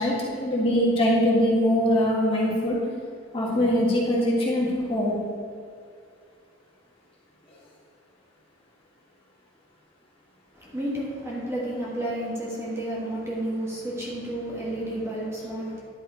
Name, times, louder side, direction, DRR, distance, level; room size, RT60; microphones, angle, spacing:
voice 1, 0.0-2.8 3.3-5.2, equal, 30° left, -5 dB, 1.8 m, -22 dB
voice 2, 10.5-15.8, right 1 dB, 15° right, -6 dB, 1.6 m, -31 dB
10.5 x 5.4 x 4.5 m, 2.3 s
head